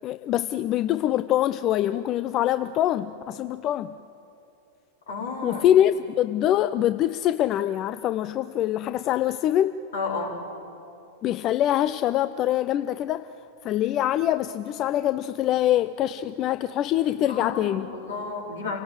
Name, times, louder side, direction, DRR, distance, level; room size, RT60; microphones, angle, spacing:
voice 1, 0.0-3.9 5.4-9.8 11.2-13.3 13.6-17.9, left 12 dB, 35° left, 14 dB, 0.5 m, -24 dB
voice 2, 5.1-5.7 9.9-10.4 17.3-18.8, left 4 dB, 70° left, 0 dB, 4.2 m, -32 dB
29.0 x 18.0 x 7.8 m, 2.9 s
figure-of-eight pair, 90°, 0 cm